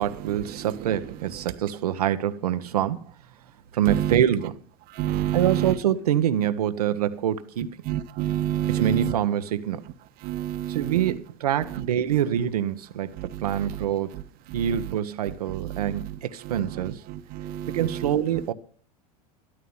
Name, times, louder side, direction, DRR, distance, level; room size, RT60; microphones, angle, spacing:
voice 1, 0.0-3.1 3.7-4.6 5.3-7.6 8.7-9.8 10.7-14.2 14.5-17.0 17.7-18.5, right 10 dB, 85° right, 1.0 m, -25 dB
voice 2, 3.9-4.2 5.0-5.7 7.9-9.1 10.2-11.1 13.2-13.8 15.5-15.8 16.7-18.1, right 12 dB, 50° right, 1.2 m, -28 dB
13.5 x 12.5 x 5.5 m
hypercardioid pair, 100°, 19 cm